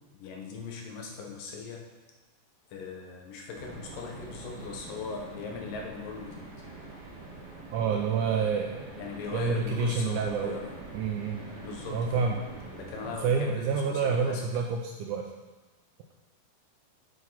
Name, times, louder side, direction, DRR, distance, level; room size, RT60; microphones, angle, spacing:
voice 1, 0.1-1.9 2.7-6.5 9.0-10.8 11.6-12.3 12.8-14.4, left 5 dB, 70° left, 1 dB, 2.9 m, -39 dB
sound 1, 3.5-13.1, right 3 dB, 35° right, 2.1 m, -45 dB
voice 2, 7.7-8.9 9.3-10.6 10.9-11.4 11.9-12.4 13.2-15.3, right 5 dB, 80° right, 2 dB, 1.9 m, -28 dB
8.0 x 7.9 x 5.7 m, 1.2 s
omnidirectional pair, 4.2 m